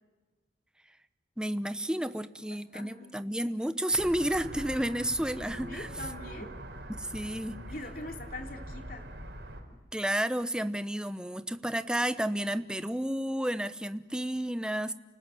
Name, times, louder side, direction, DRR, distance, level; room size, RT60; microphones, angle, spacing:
voice 1, 1.4-5.9 6.9-7.6 9.9-14.9, right 1 dB, 5° right, 11 dB, 0.8 m, -31 dB
voice 2, 2.7-3.1 5.7-6.8 7.7-9.1, left 2 dB, 55° left, 3 dB, 3.1 m, -43 dB
sound 1, 3.9-9.6, right 1 dB, 85° right, 4.9 m, -43 dB
29.0 x 19.5 x 9.1 m, 1.2 s
head